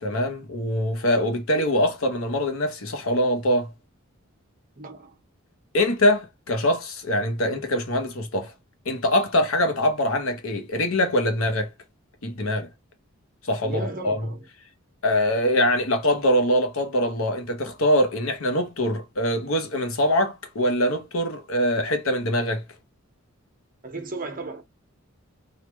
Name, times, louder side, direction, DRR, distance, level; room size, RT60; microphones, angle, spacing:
voice 1, 0.0-3.7 5.7-8.5 8.8-11.7 12.2-12.7 13.4-14.3 15.0-22.6, left 1 dB, 70° left, 0.9 m, -23 dB
voice 2, 4.8-5.2 13.6-14.4 23.8-24.6, right 3 dB, 40° right, 0.9 m, -35 dB
3.3 x 2.4 x 3.0 m
head